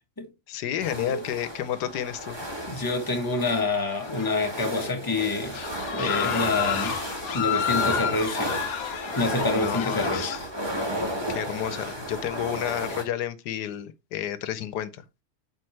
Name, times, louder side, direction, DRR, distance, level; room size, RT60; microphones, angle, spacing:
voice 1, 0.5-2.4 9.5-10.4 11.3-15.0, left 11 dB, 85° left, 1.3 m, -31 dB
sound 1, 0.8-13.0, equal, 15° right, 1.8 m, -33 dB
voice 2, 2.7-5.6 5.9-7.0 7.3-8.5 9.1-10.3, left 3 dB, 15° left, 1.2 m, -27 dB
sound 2, 3.8-4.6 5.0-5.1 5.5-10.4, left 9 dB, 65° left, 1.1 m, -30 dB
7.8 x 5.3 x 3.2 m
omnidirectional pair, 1.7 m